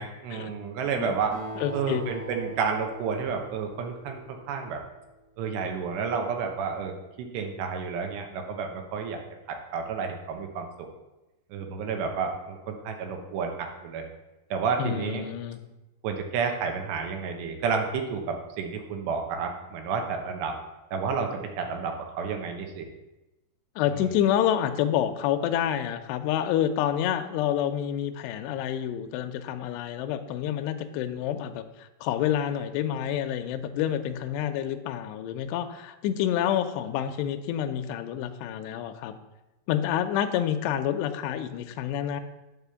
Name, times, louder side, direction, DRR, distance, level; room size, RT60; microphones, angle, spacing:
voice 1, 0.0-1.4 1.7-4.8 5.4-9.2 9.5-10.9 11.5-14.0 14.5-15.2 16.0-20.5 20.9-22.9, right 5 dB, 75° right, 4 dB, 2.9 m, -31 dB
Acoustic guitar, 1.3-5.1, right 1 dB, 60° right, 0.9 m, -42 dB
voice 2, 1.6-2.0 14.8-15.6 23.8-39.1 39.7-42.2, left 10 dB, 80° left, 7 dB, 2.5 m, -28 dB
9.0 x 4.9 x 6.9 m, 1.0 s
omnidirectional pair, 5.4 m